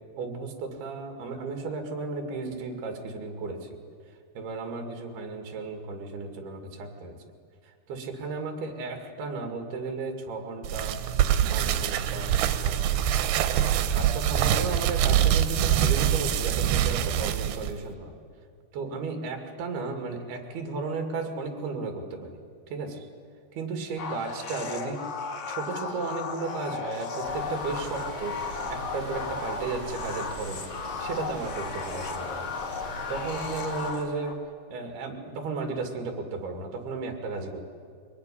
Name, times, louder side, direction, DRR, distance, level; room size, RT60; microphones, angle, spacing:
voice 1, 0.2-3.7 4.4-7.2 7.6-11.0 11.5-13.3 13.9-18.1 18.7-22.4 22.7-23.1 23.5-25.0 25.5-28.4 28.7-30.7 31.0-32.5 33.1-34.4 34.7-37.6, right 3 dB, 70° right, 5 dB, 4.1 m, -34 dB
sound 1, 10.6-17.7, right 10 dB, 90° right, 3.1 m, -24 dB
sound 2, 24.0-34.3, left 5 dB, 50° left, 2.9 m, -35 dB
sound 3, 27.2-33.9, right 1 dB, 5° right, 6.5 m, -41 dB
22.0 x 20.5 x 10.0 m, 2.2 s
omnidirectional pair, 4.7 m